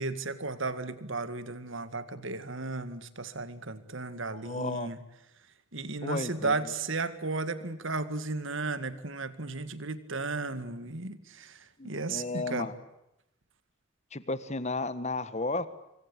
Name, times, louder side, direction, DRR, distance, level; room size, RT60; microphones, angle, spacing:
voice 1, 0.0-5.0 5.7-12.7, right 3 dB, 60° right, 13 dB, 2.0 m, -34 dB
voice 2, 4.4-4.9 6.0-6.7 11.8-12.7 14.1-15.7, left 2 dB, 30° left, 14 dB, 1.5 m, -33 dB
26.0 x 24.5 x 8.3 m, 0.86 s
head